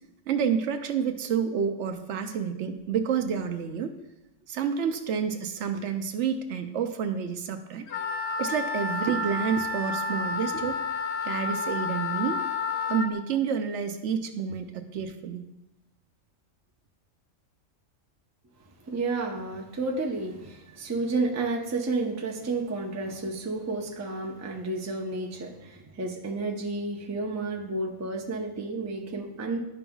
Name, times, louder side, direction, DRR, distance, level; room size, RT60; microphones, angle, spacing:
voice 1, 0.3-3.9 4.5-7.9 8.4-10.8 11.2-12.4 12.9-15.4, right 7 dB, 70° right, 7 dB, 0.8 m, -29 dB
Wind instrument woodwind instrument, 7.9-13.1, left 4 dB, 55° left, 0.8 m, -30 dB
voice 2, 18.8-29.6, right 3 dB, 20° right, 1 dB, 0.5 m, -31 dB
11.5 x 5.3 x 2.3 m, 0.94 s
omnidirectional pair, 1.3 m